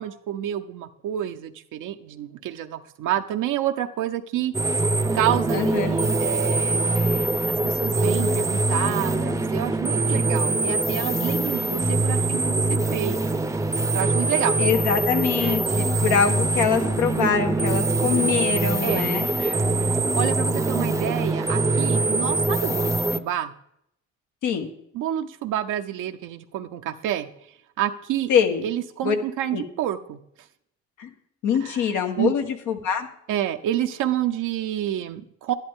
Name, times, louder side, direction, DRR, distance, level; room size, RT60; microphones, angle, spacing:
voice 1, 0.0-12.6 12.9-13.2 13.9-14.6 15.4-15.6 18.8-19.1 19.4-19.6 20.2-23.5 24.9-27.3 27.8-28.3 28.6-30.2 31.6-31.9 32.2-32.3 33.3-35.5, right 11 dB, 85° right, 5 dB, 0.7 m, -29 dB
sound 1, 4.5-23.2, right 2 dB, 10° right, 0.5 m, -23 dB
voice 2, 5.5-6.0 14.6-19.3 24.4-24.7 28.3-28.7 29.0-29.1 29.5-29.6 31.0-31.1 31.4-33.1, left 7 dB, 90° left, 5 dB, 1.4 m, -24 dB
11.5 x 10.5 x 3.6 m, 0.73 s
cardioid pair, 90°, 30 cm